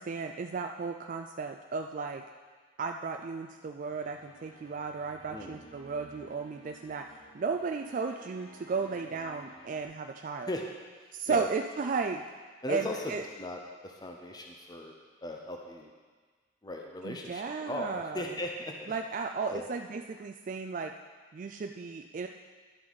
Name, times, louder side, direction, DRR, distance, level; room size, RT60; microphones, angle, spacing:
voice 1, 0.0-2.2 2.8-10.5 11.1-12.2 12.7-13.3 17.0-18.4 18.9-20.9 21.3-22.3, right 4 dB, 40° right, 4 dB, 0.3 m, -34 dB
sound 1, 3.8-9.8, right 1 dB, 50° left, 3.4 m, -55 dB
voice 2, 12.6-13.1 13.4-14.9 15.2-15.9 16.6-18.9 19.5-19.6, left 1 dB, 20° left, 1 dB, 0.7 m, -37 dB
11.0 x 7.6 x 4.0 m, 1.5 s
head